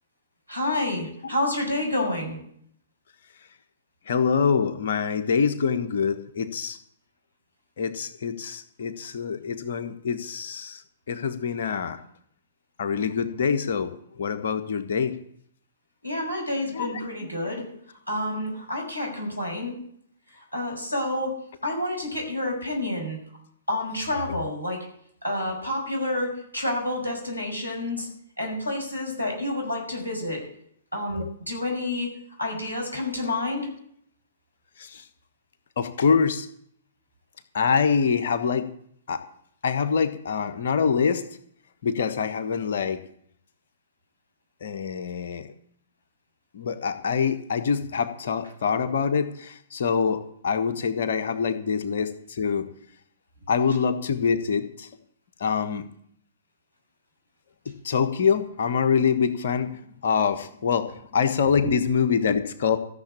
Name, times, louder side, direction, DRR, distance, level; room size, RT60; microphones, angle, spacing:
voice 1, 0.5-2.4 16.0-17.6 18.1-19.7 20.3-21.3 21.6-23.2 23.7-24.9 25.2-28.1 28.4-30.4 30.9-32.1 32.4-33.7 61.6-61.8, left 1 dB, 90° right, 1 dB, 6.2 m, -29 dB
voice 2, 4.1-6.8 7.8-10.8 11.1-12.0 12.8-15.1 16.7-17.1 17.4-17.5 24.1-24.2 31.1-31.3 34.8-35.0 35.8-36.5 37.5-38.7 39.1-39.2 39.6-41.2 41.8-43.0 44.6-45.5 46.5-52.7 53.5-54.9 55.4-55.9 57.6-59.7 60.0-62.8, left 6 dB, 55° left, 9 dB, 1.3 m, -25 dB
14.5 x 7.1 x 8.5 m, 0.66 s
figure-of-eight pair, 115°, 0 cm